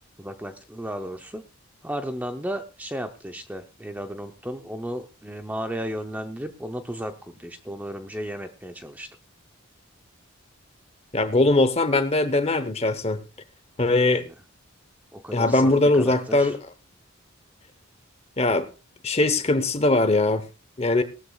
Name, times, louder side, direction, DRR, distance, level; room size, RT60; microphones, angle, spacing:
voice 1, 0.2-1.4 1.8-9.1 14.0-14.3 15.1-16.5, equal, 10° right, 0.6 m, -34 dB
voice 2, 11.1-13.2 13.8-14.3 15.3-16.6 18.4-18.7 19.0-20.4 20.8-21.0, left 2 dB, 30° left, 0.9 m, -21 dB
18.5 x 13.0 x 2.3 m
head